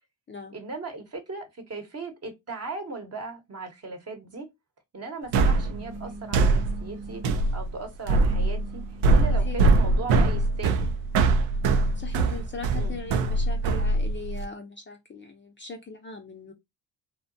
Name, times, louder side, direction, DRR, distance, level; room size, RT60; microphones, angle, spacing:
voice 1, 0.5-4.5 4.9-8.8 9.1-10.9 12.7-13.0, right 3 dB, 35° right, 0.9 m, -38 dB
sound 1, 5.3-14.5, right 3 dB, 85° right, 0.5 m, -23 dB
sound 2, 5.5-7.5 8.1-10.8 11.4-13.7, right 2 dB, 10° right, 0.8 m, -46 dB
voice 2, 11.9-16.5, left 4 dB, 25° left, 0.5 m, -40 dB
2.7 x 2.2 x 2.6 m
supercardioid pair, 70°, 44 cm